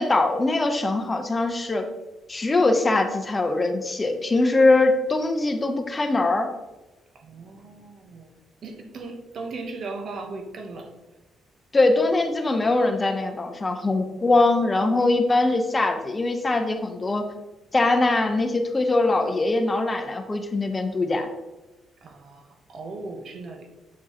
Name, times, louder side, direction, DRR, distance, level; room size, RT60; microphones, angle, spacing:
voice 1, 0.0-1.9 2.3-6.5 11.7-17.2 17.7-21.3, left 2 dB, 25° left, 5 dB, 0.8 m, -22 dB
voice 2, 7.2-8.3 8.6-10.9 22.0-22.4 22.7-23.7, right 3 dB, 60° right, 4 dB, 1.0 m, -37 dB
8.3 x 4.5 x 2.9 m, 1.1 s
cardioid pair, 90°, 0 cm